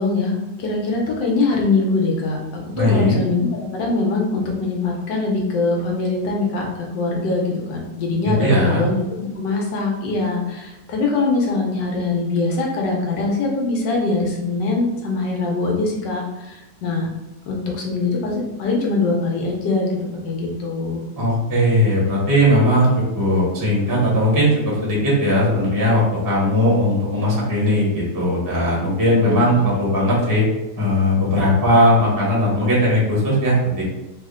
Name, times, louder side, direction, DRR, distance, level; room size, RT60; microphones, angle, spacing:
voice 1, 0.0-2.4 2.8-3.5 3.7-17.1 17.5-19.9 20.2-21.0 29.2-29.5, left 3 dB, 90° left, -1 dB, 1.5 m, -22 dB
voice 2, 2.7-3.2 8.2-8.8 21.2-22.9 23.1-30.4 30.8-33.8, equal, 15° right, -5 dB, 0.7 m, -18 dB
3.5 x 2.1 x 3.6 m, 0.98 s
omnidirectional pair, 1.8 m